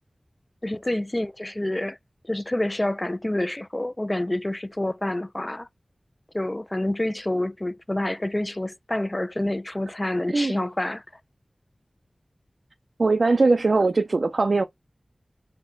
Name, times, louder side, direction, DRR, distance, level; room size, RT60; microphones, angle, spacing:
voice 1, 0.6-2.0 2.2-5.7 6.3-11.0, left 1 dB, 25° left, 0.3 m, -28 dB
voice 2, 13.0-14.6, right 3 dB, 75° right, 0.4 m, -20 dB
4.2 x 2.1 x 3.7 m
wide cardioid pair, 50°, 0 cm